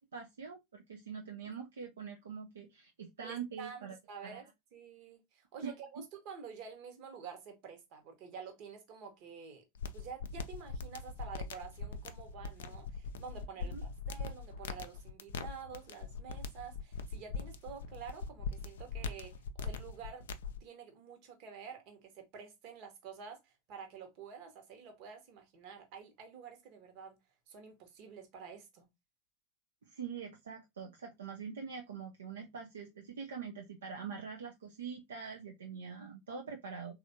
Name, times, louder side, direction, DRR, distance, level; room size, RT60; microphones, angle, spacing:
voice 1, 0.1-4.0 4.2-4.4 5.6-5.7 13.6-13.8 29.8-37.0, right 6 dB, 75° right, 0.4 m, -44 dB
voice 2, 3.2-4.4 4.7-9.6 9.9-20.2 20.6-27.2 27.5-28.9, right 6 dB, 50° right, 1.0 m, -49 dB
sound 1, 9.7-20.6, left 5 dB, 65° left, 0.3 m, -41 dB
3.3 x 2.4 x 2.6 m
figure-of-eight pair, 85°, 0 cm